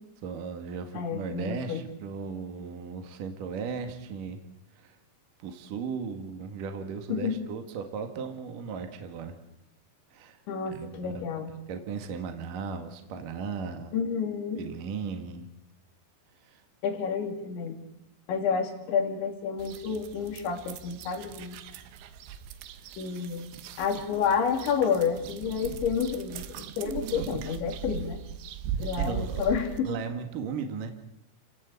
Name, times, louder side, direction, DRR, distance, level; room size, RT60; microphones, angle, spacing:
voice 1, 0.2-4.4 4.8-4.9 5.4-9.3 10.1-10.4 10.7-13.9 14.6-15.5 16.4-16.6 29.0-29.4 29.8-30.9, right 5 dB, 55° right, 6 dB, 3.0 m, -36 dB
voice 2, 1.0-1.8 7.1-7.4 10.5-11.5 13.9-14.6 16.8-17.8 18.3-21.6 23.0-23.5 23.8-28.2 28.8-29.9, left 6 dB, 85° left, 5 dB, 5.2 m, -29 dB
sound 1, 19.6-29.8, right 7 dB, 80° right, 3.6 m, -39 dB
30.0 x 17.5 x 8.3 m, 0.84 s
omnidirectional pair, 5.1 m